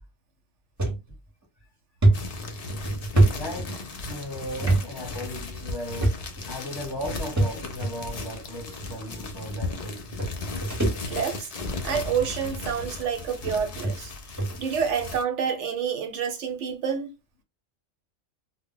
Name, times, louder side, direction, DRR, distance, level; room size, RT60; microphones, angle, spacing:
sound 1, 0.8-1.0 1.4-1.5 2.0-4.1 4.6-4.8 5.1-5.2 6.0-6.5 7.4-7.9 8.8-8.9 9.9-10.0 10.2-11.4 11.8-12.1 12.9-13.0 13.5-13.6 13.8-13.9 14.4-14.6, right 2 dB, 15° right, 0.6 m, -23 dB
sound 2, 2.1-15.2, left 3 dB, 60° left, 0.4 m, -36 dB
voice 1, 3.3-3.8 4.1-10.2, equal, 25° left, 0.7 m, -36 dB
voice 2, 11.1-11.5 11.8-14.1 14.6-17.1, right 7 dB, 70° right, 0.9 m, -28 dB
2.1 x 2.1 x 3.7 m
omnidirectional pair, 1.3 m